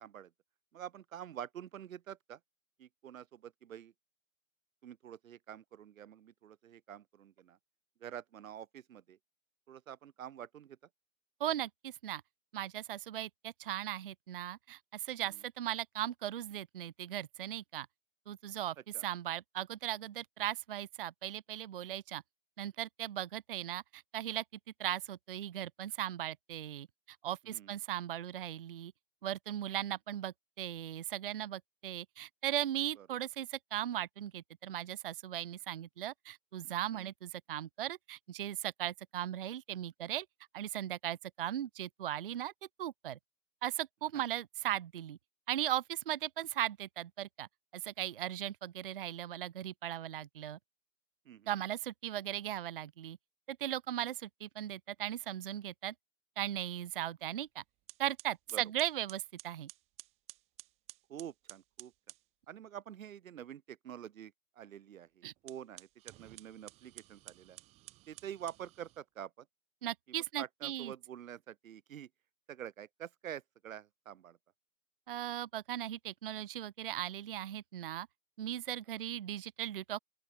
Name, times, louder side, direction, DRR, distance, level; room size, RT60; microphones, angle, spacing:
voice 1, 0.0-0.3 0.7-2.4 2.8-3.9 4.8-7.6 8.0-9.2 9.7-10.8 15.2-15.4 18.9-19.1 27.4-27.8 33.0-33.1 36.9-37.1 44.1-44.2 51.3-51.6 58.5-58.6 61.1-61.9 62.5-67.6 68.1-69.5 70.4-72.1 72.5-74.4, right 10 dB, 85° right, 0.7 m, -47 dB
voice 2, 11.4-12.2 12.5-17.9 18.3-18.8 19.0-22.2 22.6-24.4 24.8-26.9 27.2-28.9 29.2-40.3 40.5-42.5 42.8-43.2 43.6-45.2 45.5-47.5 47.7-50.6 51.5-53.2 53.5-55.9 56.4-57.6 58.0-59.7 65.2-65.3 69.8-70.9 75.1-78.1 78.4-80.0, right 12 dB, 45° right, 0.5 m, -38 dB
sound 1, 57.3-57.5 57.9-62.3 65.4-69.0, right 18 dB, 15° right, 1.4 m, -54 dB
open air
hypercardioid pair, 150°, 40 cm